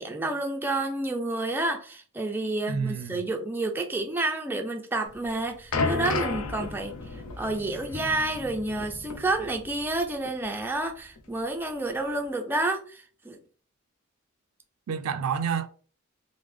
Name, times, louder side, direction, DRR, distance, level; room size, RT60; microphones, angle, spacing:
voice 1, 0.0-13.4, right 2 dB, 10° right, 0.3 m, -30 dB
voice 2, 2.7-3.2 14.9-15.7, right 6 dB, 85° right, 0.4 m, -29 dB
sound 1, 5.1-10.0 10.3-10.4 11.2-11.3, left 3 dB, 80° left, 0.6 m, -33 dB
3.2 x 2.1 x 3.4 m
head